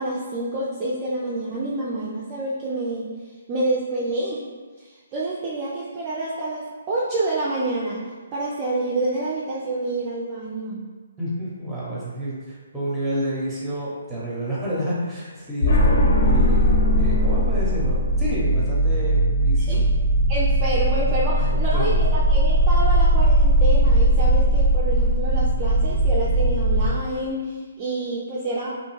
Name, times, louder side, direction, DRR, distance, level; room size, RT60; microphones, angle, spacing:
voice 1, 0.0-3.1 3.5-4.4 4.8-8.0 8.3-10.8 15.6-15.8 19.6-19.9 20.3-28.7, right 2 dB, 25° right, -8 dB, 0.4 m, -28 dB
voice 2, 11.2-16.7 17.0-19.8 21.5-22.2, equal, 5° right, -7 dB, 0.8 m, -30 dB
sound 1, 15.6-26.9, equal, 60° left, 0.6 m, -19 dB
2.6 x 2.3 x 3.0 m, 1.4 s
figure-of-eight pair, 140°, 0 cm